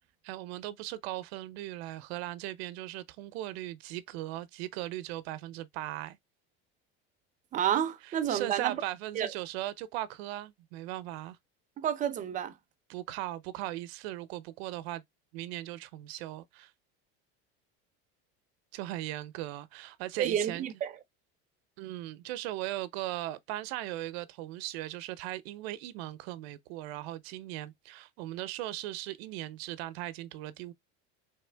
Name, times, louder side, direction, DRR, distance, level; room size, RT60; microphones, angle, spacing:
voice 1, 0.2-6.2 8.0-11.4 12.9-15.0 15.3-16.7 18.7-20.7 21.8-30.7, right 15 dB, 85° right, 0.7 m, -38 dB
voice 2, 7.5-8.8 9.1-9.3 11.8-12.6 20.2-20.9, right 9 dB, 25° right, 0.6 m, -30 dB
4.2 x 3.4 x 3.3 m
cardioid pair, 165°, 30 cm